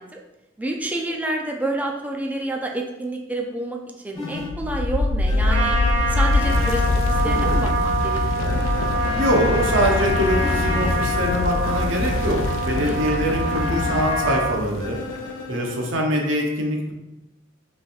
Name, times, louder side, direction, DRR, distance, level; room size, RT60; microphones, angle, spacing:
voice 1, 0.6-3.8 4.0-5.8 6.1-8.5 12.8-13.0, right 1 dB, 10° right, 0 dB, 0.4 m, -29 dB
sound 1, 4.1-4.5 5.3-7.7 8.4-10.9 11.6-14.0 14.8-15.9, left 2 dB, 20° left, 0.8 m, -33 dB
sound 2, 4.4-15.2, left 2 dB, 90° left, 0.4 m, -24 dB
Trumpet, 5.5-14.6, right 1 dB, 65° right, 1.1 m, -26 dB
voice 2, 9.2-15.0 15.5-16.9, equal, 90° right, 1 dB, 0.8 m, -23 dB
5.1 x 3.3 x 2.3 m, 0.95 s
head